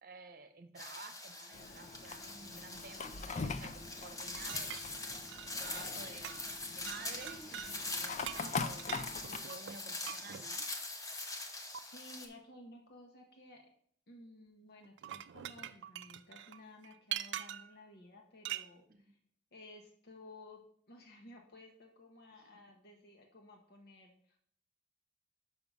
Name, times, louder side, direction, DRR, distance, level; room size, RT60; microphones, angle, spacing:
voice 1, 0.0-5.3 5.6-10.7 18.9-19.1 22.5-22.6, right 3 dB, 50° right, 8 dB, 0.9 m, -52 dB
sound 1, 0.8-12.3, left 2 dB, 20° left, 0.9 m, -43 dB
Fire, 1.5-9.4, left 4 dB, 40° left, 0.5 m, -43 dB
sound 2, 4.3-6.0 6.2-6.6 6.9-7.7 8.2-10.5 11.7-11.8 14.8-17.8 18.4-18.7, right 11 dB, 70° right, 0.4 m, -44 dB
voice 2, 11.5-13.7 14.1-19.2 19.5-24.4, left 1 dB, 60° left, 2 dB, 1.1 m, -56 dB
6.1 x 5.5 x 5.3 m, 0.62 s
head